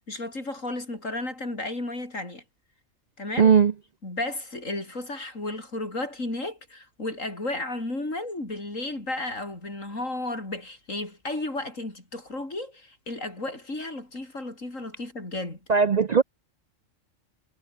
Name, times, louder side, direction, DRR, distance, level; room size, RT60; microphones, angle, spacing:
voice 1, 0.1-2.4 3.2-3.5 4.0-15.6, left 2 dB, 90° left, 6.4 m, -33 dB
voice 2, 3.4-3.7 15.7-16.2, right 6 dB, 45° right, 0.5 m, -18 dB
omnidirectional pair, 1.3 m